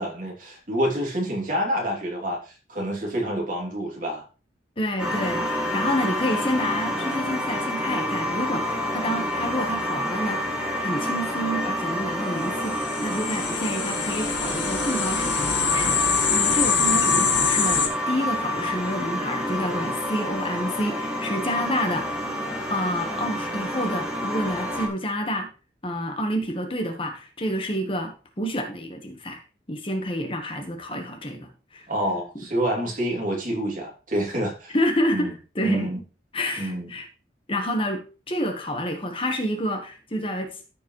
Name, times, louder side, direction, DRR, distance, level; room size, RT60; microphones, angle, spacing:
voice 1, 0.0-4.2 31.9-34.8 35.1-35.3 35.6-36.0 36.6-36.9, equal, 45° right, -1 dB, 3.1 m, -27 dB
voice 2, 4.8-10.6 10.8-22.2 22.7-25.5 25.8-29.4 29.7-31.8 34.7-35.3 35.5-35.9 36.3-37.1 37.5-40.6, equal, 30° left, 4 dB, 1.4 m, -28 dB
sound 1, 5.0-24.9, left 1 dB, 5° right, 1.7 m, -28 dB
sound 2, 12.5-17.9, left 6 dB, 90° left, 1.9 m, -25 dB
14.0 x 5.2 x 3.2 m, 0.34 s
head